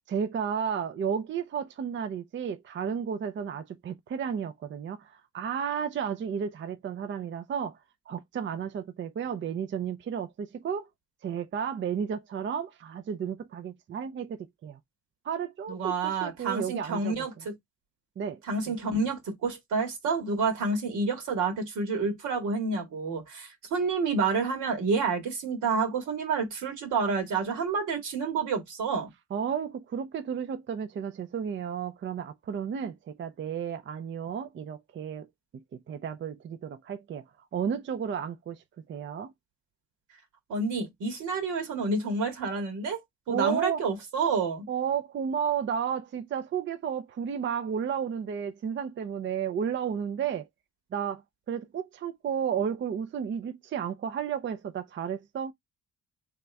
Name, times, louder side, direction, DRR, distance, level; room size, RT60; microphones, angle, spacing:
voice 1, 0.1-7.8 8.1-10.9 11.2-14.8 15.2-17.3 18.2-18.4 18.7-18.8 29.3-35.3 35.5-37.2 37.5-38.6 38.9-39.3 43.3-43.8 44.7-50.5 50.9-51.2 51.5-55.5, right 7 dB, 40° right, 0.5 m, -32 dB
voice 2, 15.7-17.5 18.5-29.1 40.5-43.0 43.3-44.7, right 4 dB, 80° right, 1.9 m, -29 dB
3.7 x 3.5 x 3.3 m
cardioid pair, 90°, 30 cm